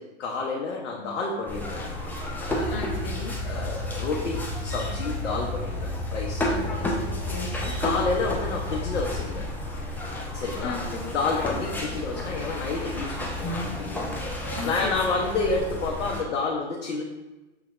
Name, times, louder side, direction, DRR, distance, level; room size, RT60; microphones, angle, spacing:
voice 1, 0.0-2.0 2.4-2.8 3.4-6.5 7.8-9.5 10.3-10.8 11.1-14.0 14.6-17.0, left 3 dB, 85° left, -2 dB, 0.7 m, -29 dB
sound 1, 1.5-16.2, left 1 dB, 5° left, 0.5 m, -31 dB
voice 2, 2.7-3.3 6.4-7.7 10.6-11.0 14.5-15.2, left 5 dB, 30° left, 2 dB, 0.8 m, -36 dB
5.6 x 2.9 x 2.4 m, 1.1 s
hypercardioid pair, 105°, 35 cm